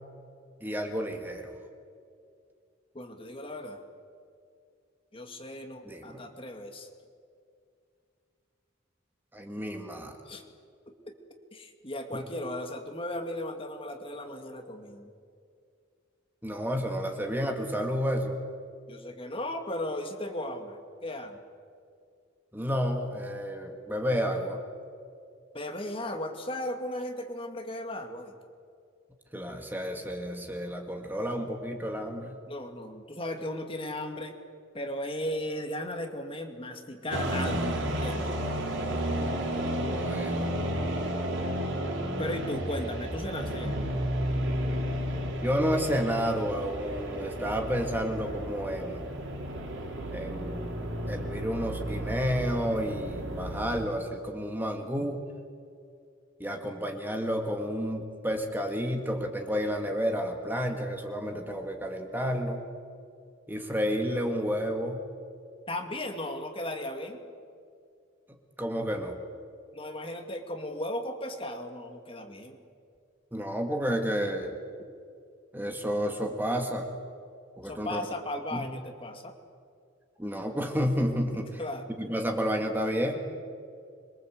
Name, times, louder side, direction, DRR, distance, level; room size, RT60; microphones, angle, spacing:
voice 1, 0.6-1.5 5.9-6.2 9.3-10.2 12.1-12.2 16.4-18.4 22.5-24.6 29.3-32.4 39.8-40.5 45.4-49.0 50.1-50.7 51.1-55.2 56.4-62.6 63.5-65.0 68.6-69.2 73.3-74.5 75.5-76.9 77.6-78.0 78.5-78.6 80.2-81.5 82.0-83.2, equal, 10° right, 3 dB, 2.0 m, -31 dB
voice 2, 2.9-3.8 5.1-6.9 10.3-10.5 11.1-11.2 11.5-15.1 18.9-21.4 25.5-28.3 32.5-34.3 34.7-38.3 42.2-43.8 65.7-67.2 69.7-72.6 77.6-79.3 81.3-81.9, left 1 dB, 30° left, 4 dB, 2.2 m, -36 dB
sound 1, 37.1-53.9, equal, 75° right, 4.1 m, -32 dB
26.0 x 23.0 x 8.0 m, 2.3 s
head